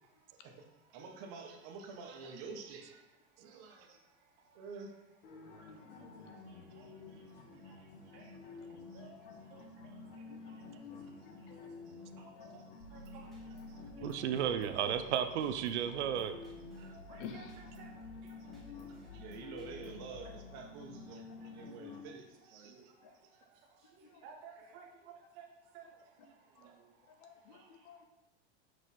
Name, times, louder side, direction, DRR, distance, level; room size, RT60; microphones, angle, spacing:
voice 1, 0.9-3.1 3.4-4.0 4.5-4.9 6.5-7.2 7.6-10.2 10.5-11.5 11.9-12.0 12.4-14.1 16.8-17.0 18.0-18.8 19.1-23.4 24.7-24.9 25.1-25.4 27.5-27.7, right 4 dB, 40° right, 2 dB, 1.1 m, -52 dB
sound 1, 5.2-22.0, left 4 dB, 60° left, 1.3 m, -51 dB
voice 2, 6.0-6.9 7.5-7.9 8.1-8.3 8.7-9.2 9.5-9.9 12.2-12.7 12.9-13.3 14.0-14.1 14.9-15.0 17.1-17.4 17.8-17.9 18.2-18.3 22.6-22.9 23.8-25.5 25.7-25.9 26.2-26.9, right 6 dB, 20° right, -1 dB, 0.3 m, -56 dB
voice 3, 8.7-9.1 10.3-10.5 11.2-11.6 12.4-12.5 13.5-13.6 17.2-17.6 23.0-23.1 24.1-24.2 25.8-25.9 26.6-26.7 27.1-28.0, left 6 dB, 35° left, 7 dB, 0.6 m, -52 dB
sound 2, 12.8-21.0, right 1 dB, ahead, 1.3 m, -55 dB
voice 4, 14.0-16.4, right 9 dB, 85° right, 9 dB, 0.7 m, -33 dB
6.2 x 4.8 x 4.2 m, 1.1 s
supercardioid pair, 160°, 34 cm